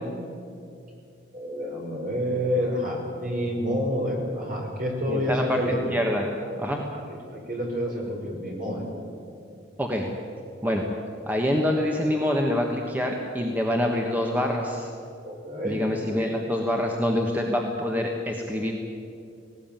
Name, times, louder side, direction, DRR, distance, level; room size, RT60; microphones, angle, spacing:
voice 1, 1.3-5.8 6.8-7.0 7.3-8.8 15.2-15.8, equal, 45° right, -1 dB, 5.6 m, -28 dB
voice 2, 5.1-5.6 5.9-6.3 6.6-6.8 9.8-10.1 10.6-10.9 11.2-14.9 15.6-18.7, left 1 dB, 10° right, 1 dB, 1.4 m, -26 dB
19.0 x 17.5 x 9.1 m, 2.5 s
head